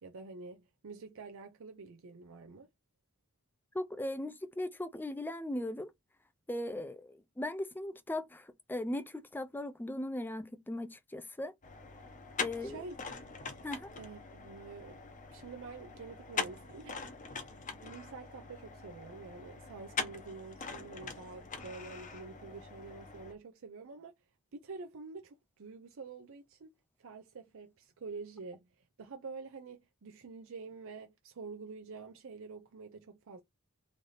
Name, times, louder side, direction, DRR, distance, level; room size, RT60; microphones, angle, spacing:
voice 1, 0.0-2.7 12.6-12.9 14.0-15.0 15.3-17.4 17.7-24.1 24.5-26.7 27.0-28.7 29.0-33.4, right 4 dB, 65° right, 0.5 m, -47 dB
voice 2, 3.7-5.9 6.5-11.5 12.4-12.8 13.6-13.9, left 1 dB, 10° left, 0.4 m, -38 dB
sound 1, 11.6-23.3, left 5 dB, 35° left, 0.7 m, -43 dB
3.3 x 2.7 x 3.9 m
head